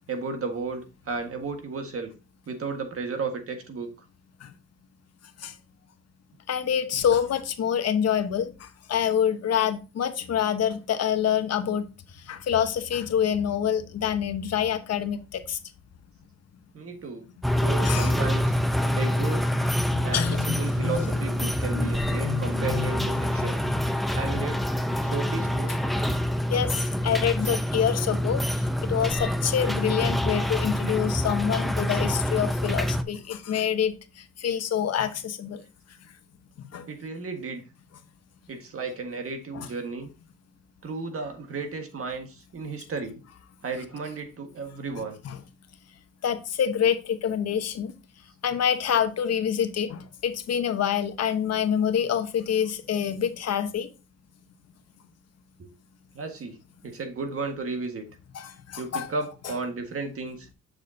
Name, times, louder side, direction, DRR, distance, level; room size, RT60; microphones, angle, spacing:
voice 1, 0.1-2.1 2.5-3.9 16.7-17.3 17.6-18.5 19.0-19.5 20.0-23.6 24.1-24.6 25.0-25.8 36.9-37.6 38.5-40.1 40.8-43.2 43.6-45.2 55.6-55.7 56.1-56.6 56.8-58.0 58.8-60.5, right 4 dB, 50° right, 1.7 m, -34 dB
voice 2, 6.5-11.8 12.2-15.6 17.8-18.1 18.8-19.1 19.6-23.5 24.3-24.5 26.5-35.6 36.6-36.9 39.5-39.7 45.2-45.4 46.2-47.9 48.4-53.9 58.3-59.1, left 8 dB, 55° left, 1.0 m, -27 dB
sound 1, 17.4-33.0, equal, ahead, 0.6 m, -26 dB
6.7 x 6.4 x 2.7 m
cardioid pair, 90°, 30 cm